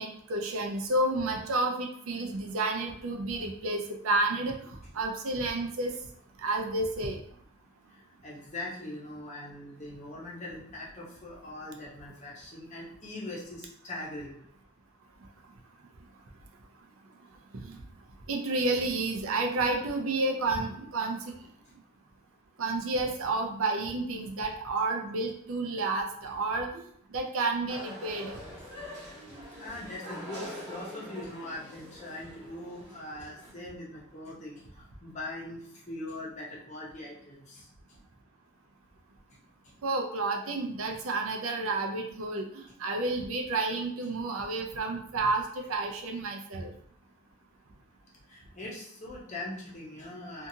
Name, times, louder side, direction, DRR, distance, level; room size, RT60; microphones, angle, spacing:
voice 1, 0.0-5.9 6.4-7.2 17.6-17.8 18.3-21.3 22.6-26.8 27.1-28.4 39.8-46.7, right 2 dB, 65° right, 2 dB, 0.5 m, -30 dB
voice 2, 7.9-14.4 28.6-28.7 29.6-37.7 39.3-39.4 39.6-39.7 42.6-42.7 48.3-50.5, left 2 dB, 30° left, -4 dB, 0.7 m, -41 dB
sound 1, 27.7-33.5, equal, 15° right, 1.0 m, -44 dB
2.7 x 2.4 x 2.6 m, 0.64 s
head